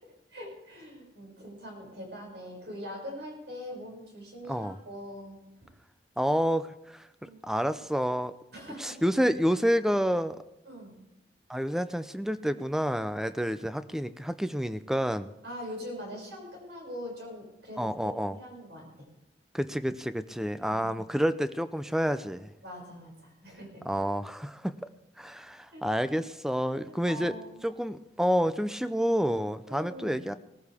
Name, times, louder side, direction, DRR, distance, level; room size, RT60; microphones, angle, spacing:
voice 1, 0.0-5.7 7.2-7.5 8.5-9.0 10.6-11.0 15.4-18.0 18.4-19.1 22.6-23.8 25.7-25.9 26.9-27.6 29.7-30.2, equal, 75° right, -1 dB, 6.5 m, -43 dB
voice 2, 6.2-8.3 8.8-10.4 11.5-15.3 17.8-18.4 19.5-22.5 23.9-24.9 25.2-27.4 27.6-30.3, equal, 5° right, 12 dB, 0.5 m, -29 dB
19.5 x 14.5 x 3.5 m, 0.90 s
head